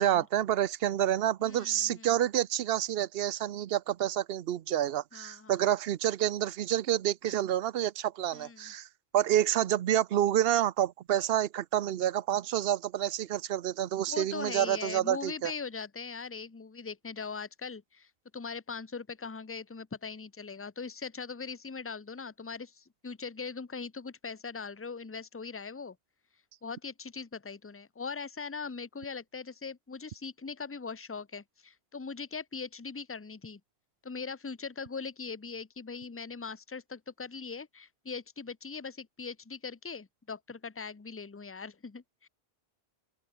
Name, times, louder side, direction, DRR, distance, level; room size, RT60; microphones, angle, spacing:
voice 1, 0.0-8.9 9.1-15.5, right 11 dB, 65° right, 0.8 m, -28 dB
voice 2, 1.4-2.1 5.1-5.5 8.3-8.7 14.1-26.0 26.6-33.6 34.0-42.3, left 5 dB, 20° left, 0.4 m, -41 dB
open air
omnidirectional pair, 1.1 m